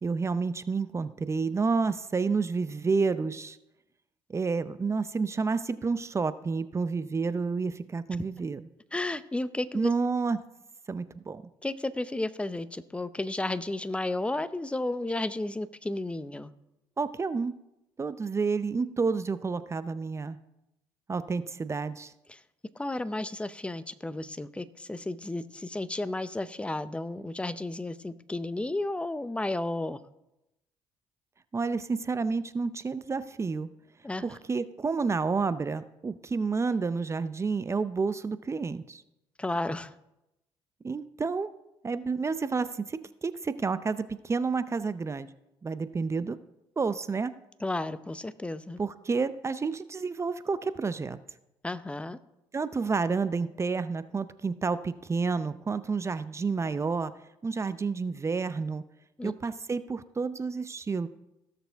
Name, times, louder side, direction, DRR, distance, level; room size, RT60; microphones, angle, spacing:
voice 1, 0.0-3.6 4.3-8.6 9.7-10.4 10.9-11.4 17.0-17.5 18.0-20.4 21.1-22.1 31.5-33.7 34.2-39.0 40.8-41.5 41.8-45.3 45.6-46.4 46.8-47.3 48.8-51.2 52.5-57.1 57.4-58.8 59.2-61.1, right 4 dB, 30° right, 14 dB, 0.6 m, -30 dB
voice 2, 8.9-9.9 11.6-16.5 22.3-22.4 22.8-30.0 34.0-34.2 39.4-39.9 47.6-48.8 51.6-52.2 59.2-59.3, left 2 dB, 10° left, 14 dB, 0.7 m, -33 dB
17.0 x 6.7 x 3.5 m, 0.89 s
supercardioid pair, 70°, 10 cm